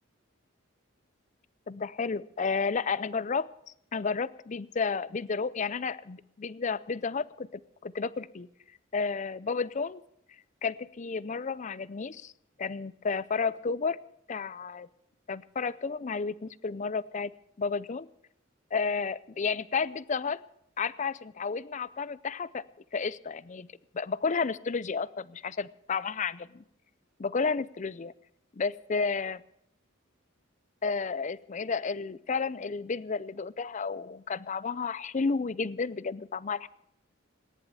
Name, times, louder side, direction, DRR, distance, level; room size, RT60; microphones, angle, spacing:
voice 1, 1.7-3.5 3.9-8.5 8.9-10.0 10.6-12.3 12.6-14.0 14.3-14.9 15.3-17.3 17.6-18.1 18.7-20.4 20.8-22.6 22.9-23.7 23.9-26.6 27.2-28.1 28.5-29.4 30.8-36.7, left 5 dB, 35° left, 19 dB, 0.5 m, -32 dB
18.0 x 10.5 x 7.0 m, 0.77 s
head